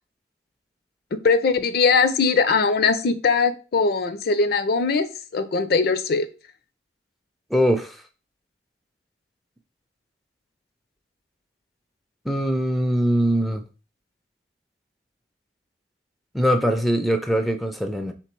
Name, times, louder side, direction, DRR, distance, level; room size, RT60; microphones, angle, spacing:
voice 1, 1.1-5.1 5.3-6.3, left 4 dB, 60° left, 0.5 m, -20 dB
voice 2, 7.5-8.0 12.3-13.6 16.3-18.1, equal, ahead, 0.4 m, -22 dB
3.8 x 3.0 x 4.4 m
head